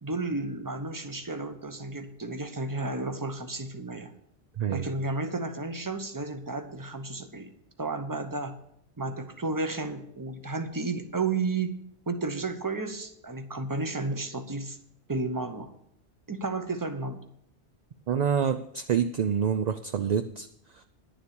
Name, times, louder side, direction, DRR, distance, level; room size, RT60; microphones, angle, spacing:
voice 1, 0.0-4.1 4.7-7.5 7.8-8.6 9.0-11.8 12.1-14.8 15.1-15.7 16.3-17.2, right 3 dB, 20° right, 8 dB, 0.9 m, -32 dB
voice 2, 4.6-4.9 18.1-20.5 20.7-20.8, right 7 dB, 55° right, 8 dB, 0.5 m, -27 dB
11.0 x 7.2 x 6.9 m, 0.72 s
omnidirectional pair, 1.2 m